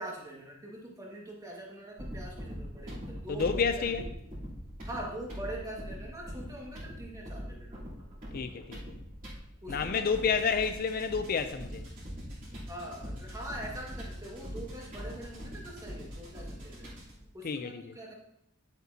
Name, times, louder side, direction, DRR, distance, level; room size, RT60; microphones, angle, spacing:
voice 1, 0.0-3.9 4.9-7.8 9.6-10.4 12.7-16.9 17.3-18.1, right 1 dB, 15° right, 1.7 m, -43 dB
sound 1, 2.0-17.2, equal, 40° right, 3.2 m, -42 dB
voice 2, 3.3-4.0 8.3-8.9 9.7-11.9 17.4-17.9, left 5 dB, 45° left, 0.4 m, -30 dB
9.6 x 7.9 x 2.7 m
head